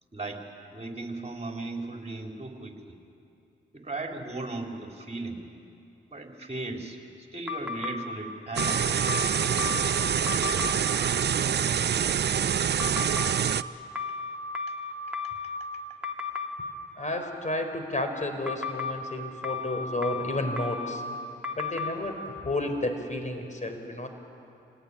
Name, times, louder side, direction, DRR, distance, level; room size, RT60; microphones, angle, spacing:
voice 1, 0.1-0.4 0.7-3.0 3.7-5.4 6.1-7.0 7.3-9.0, right 2 dB, 30° right, 2 dB, 4.2 m, -37 dB
sound 1, 7.5-8.0 8.6-9.9 10.3-10.7 12.8-13.3 13.9-15.6 16.0-16.5 18.5-18.9 19.4-21.0 21.4-21.9, left 5 dB, 5° right, 3.0 m, -33 dB
sound 2, 8.6-13.6, right 8 dB, 55° right, 0.7 m, -26 dB
voice 2, 17.0-21.0 21.6-24.1, left 1 dB, 35° left, 6 dB, 4.7 m, -31 dB
27.0 x 18.0 x 9.9 m, 2.6 s
supercardioid pair, 45°, 21 cm